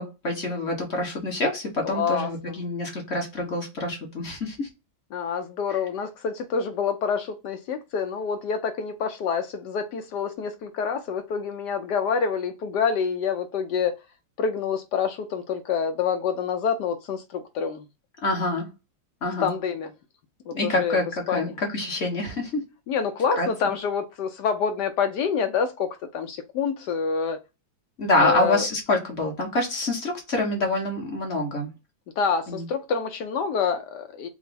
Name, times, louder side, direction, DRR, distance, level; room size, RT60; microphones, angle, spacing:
voice 1, 0.0-4.7 18.2-18.7 19.2-19.5 20.5-22.6 23.4-23.5 28.0-31.7 32.5-32.6, left 2 dB, 40° left, 1.0 m, -26 dB
voice 2, 1.8-2.5 5.1-14.0 14.4-17.8 19.4-19.9 20.5-21.0 21.3-21.5 22.9-27.4 28.2-28.7 32.2-34.3, left 6 dB, 75° left, 1.0 m, -27 dB
4.6 x 2.0 x 4.0 m
omnidirectional pair, 2.3 m